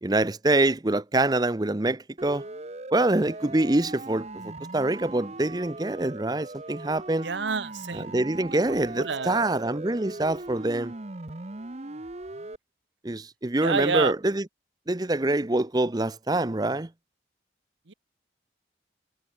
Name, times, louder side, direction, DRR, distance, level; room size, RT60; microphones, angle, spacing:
voice 1, 0.0-2.5 2.9-7.3 7.9-10.9 13.0-14.4 14.9-16.9, right 2 dB, 20° right, 0.7 m, -25 dB
Siren, 2.2-12.6, right 2 dB, 35° right, 1.0 m, -40 dB
voice 2, 7.2-8.2 8.5-8.6 8.9-9.4 13.6-14.1 17.9-18.0, right 5 dB, 85° right, 1.1 m, -28 dB
head